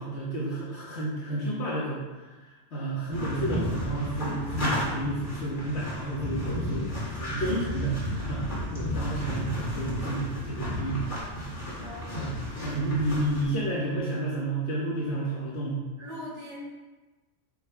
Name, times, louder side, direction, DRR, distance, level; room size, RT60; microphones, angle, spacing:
voice 1, 0.0-8.0 8.3-8.4 8.7-11.0 11.3-11.5 12.2-15.8, right 1 dB, 70° left, -7 dB, 1.4 m, -31 dB
sound 1, 3.1-13.4, equal, 45° left, 2.2 m, -33 dB
voice 2, 16.0-16.5, left 1 dB, 35° right, -10 dB, 2.5 m, -41 dB
8.8 x 6.1 x 2.2 m, 1.2 s
omnidirectional pair, 1.2 m